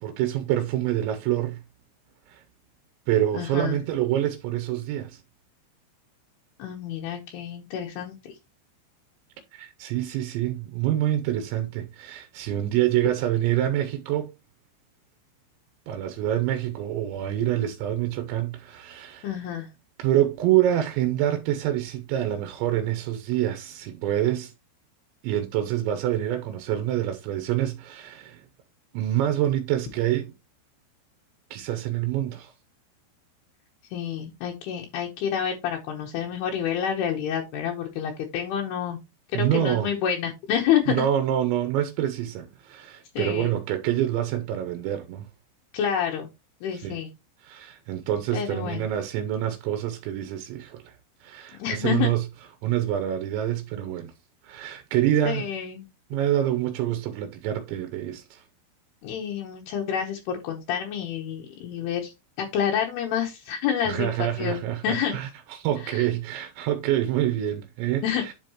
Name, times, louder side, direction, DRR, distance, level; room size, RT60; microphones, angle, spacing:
voice 1, 0.0-1.6 2.3-2.4 3.1-5.2 9.5-14.3 15.9-19.3 20.0-24.5 25.2-28.4 28.9-30.3 31.5-32.5 39.3-39.9 40.9-45.3 46.7-47.0 47.4-50.9 51.2-52.2 52.6-54.1 54.4-55.4 56.1-58.4 63.9-68.3, right 12 dB, 80° right, 2.7 m, -26 dB
voice 2, 3.3-3.8 6.6-8.3 19.2-19.7 33.9-39.0 39.3-41.1 43.1-43.5 45.7-46.3 46.6-47.1 48.3-48.9 51.6-52.1 55.3-55.9 59.0-65.2 65.8-66.1 68.0-68.2, left 8 dB, 80° left, 2.3 m, -28 dB
10.5 x 5.4 x 2.9 m
omnidirectional pair, 6.0 m